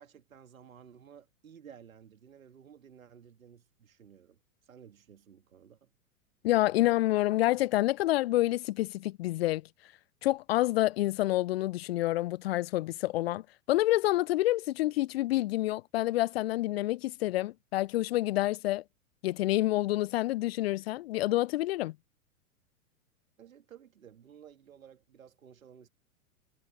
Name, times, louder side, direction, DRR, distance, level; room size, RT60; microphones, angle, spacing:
voice 1, 0.0-5.9 23.4-25.9, right 8 dB, 70° right, 3.0 m, -54 dB
voice 2, 6.4-9.6 10.2-18.8 19.2-21.9, left 16 dB, 45° left, 0.5 m, -28 dB
figure-of-eight pair, 100°, 42 cm